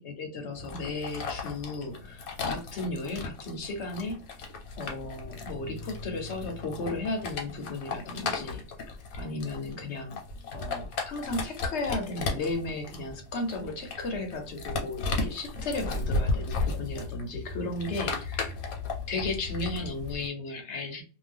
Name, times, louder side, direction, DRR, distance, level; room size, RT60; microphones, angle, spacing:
voice 1, 0.0-4.2 4.8-10.2 10.5-18.5 19.1-21.0, left 2 dB, 60° left, 4 dB, 0.9 m, -35 dB
sound 1, 0.5-20.3, left 3 dB, 80° left, 1.2 m, -35 dB
2.6 x 2.2 x 3.4 m, 0.36 s
omnidirectional pair, 1.5 m